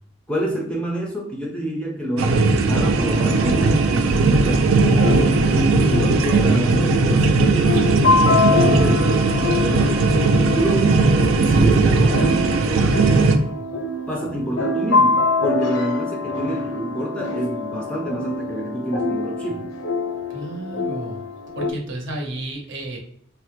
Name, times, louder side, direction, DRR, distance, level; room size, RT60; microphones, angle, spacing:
voice 1, 0.3-10.1 10.5-13.4 14.1-19.7, right 1 dB, 5° left, -2 dB, 0.4 m, -28 dB
sound 1, 2.2-13.4, right 3 dB, 80° right, 0.4 m, -18 dB
sound 2, 2.9-21.7, left 3 dB, 70° left, 0.5 m, -25 dB
voice 2, 4.5-4.9 16.3-16.6 20.3-21.2 21.5-23.0, right 1 dB, 60° right, 1 dB, 0.7 m, -33 dB
3.3 x 2.0 x 3.0 m, 0.67 s
head